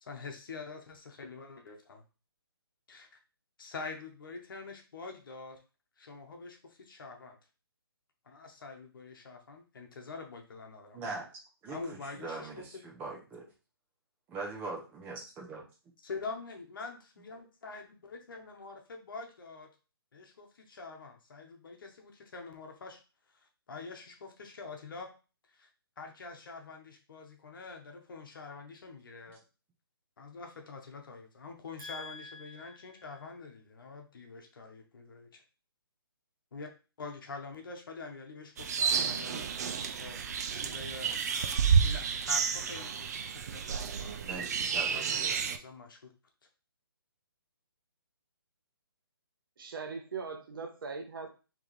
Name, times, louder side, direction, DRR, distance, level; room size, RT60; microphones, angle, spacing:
voice 1, 0.0-2.0 2.9-3.1 3.6-5.6 6.0-7.4 8.2-11.0 11.7-12.5 16.0-19.7 20.1-23.0 23.3-25.1 25.5-25.7 26.0-29.4 30.2-35.4 36.5-36.7 37.0-39.5 40.0-41.2 41.8-44.2 44.8-46.1, left 4 dB, 60° left, 1.1 m, -45 dB
voice 2, 10.9-11.3 11.6-13.5 14.3-15.6 31.8-33.2 44.2-45.4, right 3 dB, 15° right, 0.9 m, -42 dB
sound 1, 38.6-45.6, right 6 dB, 40° right, 0.4 m, -30 dB
voice 3, 49.6-51.3, right 5 dB, 60° right, 1.0 m, -40 dB
4.7 x 3.2 x 3.2 m
hypercardioid pair, 150°, 13 cm